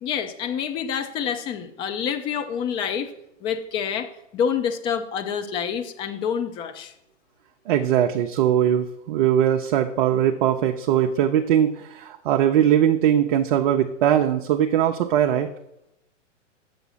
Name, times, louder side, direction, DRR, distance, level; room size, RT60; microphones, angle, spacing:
voice 1, 0.0-3.1 3.4-6.9, left 7 dB, 15° left, 8 dB, 0.4 m, -27 dB
voice 2, 7.7-15.5, right 10 dB, 40° right, 4 dB, 0.7 m, -20 dB
7.9 x 7.1 x 5.6 m, 0.83 s
hypercardioid pair, 125°, 38 cm